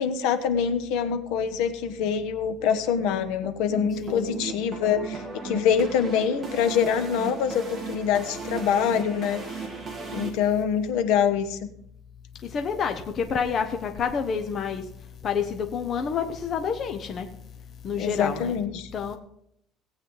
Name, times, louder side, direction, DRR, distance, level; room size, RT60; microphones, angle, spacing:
voice 1, 0.0-9.4 10.1-11.6 18.0-18.9, left 7 dB, 65° left, 1.1 m, -25 dB
sound 1, 3.4-10.3, right 4 dB, 15° right, 1.9 m, -37 dB
voice 2, 4.0-4.4 12.4-14.9 15.2-17.3 17.8-18.6 18.9-19.2, left 6 dB, 30° left, 0.8 m, -28 dB
17.5 x 8.5 x 3.9 m
cardioid pair, 175°, 0 cm